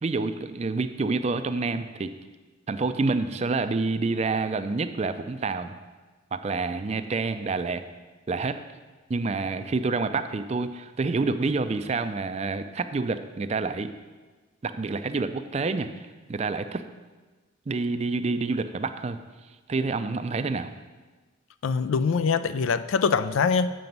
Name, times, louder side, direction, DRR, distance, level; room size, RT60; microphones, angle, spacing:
voice 1, 0.0-2.1 2.7-5.8 6.3-7.8 8.3-8.6 9.1-13.9 14.6-16.0 16.3-16.9 17.7-19.2 19.7-20.7, right 3 dB, 35° right, 10 dB, 0.4 m, -28 dB
voice 2, 21.6-23.7, left 5 dB, 75° left, 14 dB, 0.4 m, -23 dB
7.6 x 6.8 x 5.3 m, 1.3 s
head